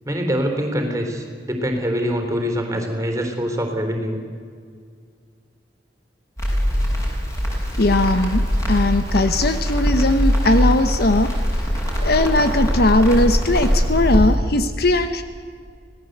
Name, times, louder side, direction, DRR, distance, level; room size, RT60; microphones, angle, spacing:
voice 1, 0.0-4.2, equal, 20° right, 4 dB, 3.7 m, -24 dB
Crackle, 6.4-14.2, equal, 15° left, 6.8 m, -21 dB
voice 2, 7.8-8.4 8.7-11.3 12.0-15.2, left 2 dB, 60° left, 9 dB, 1.1 m, -19 dB
26.5 x 17.5 x 8.1 m, 2.1 s
head